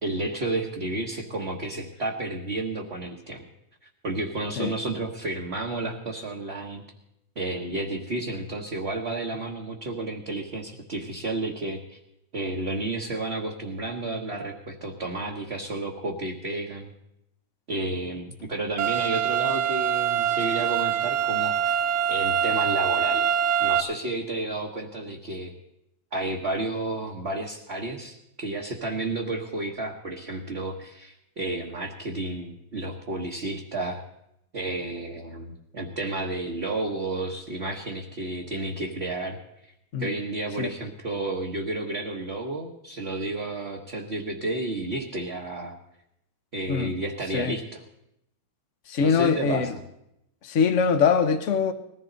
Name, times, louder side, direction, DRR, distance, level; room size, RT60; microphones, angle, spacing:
voice 1, 0.0-3.4 4.0-6.8 7.3-12.0 12.3-16.9 17.7-21.8 22.1-23.3 23.6-25.5 26.1-34.0 34.5-39.4 40.0-45.7 46.5-47.8 49.0-49.8, right 2 dB, 35° right, 1.3 m, -31 dB
sound 1, 18.8-23.8, right 8 dB, 65° right, 1.3 m, -24 dB
voice 2, 48.9-49.7 50.4-51.7, left 6 dB, 50° left, 1.0 m, -23 dB
20.0 x 15.0 x 4.0 m
omnidirectional pair, 2.2 m